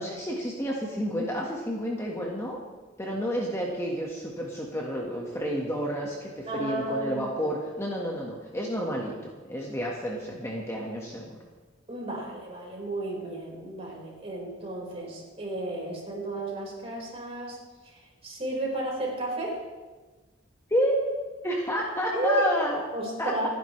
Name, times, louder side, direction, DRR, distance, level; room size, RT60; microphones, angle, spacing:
voice 1, 0.0-2.6 3.0-9.1 9.5-11.4 20.7-21.0 21.4-22.8 23.2-23.5, equal, 15° left, -2 dB, 1.5 m, -30 dB
voice 2, 6.5-7.5 11.9-17.6 17.9-18.0 18.2-19.6 22.1-22.5 22.9-23.5, right 1 dB, 30° right, -3 dB, 4.8 m, -33 dB
28.0 x 10.5 x 3.3 m, 1.3 s
head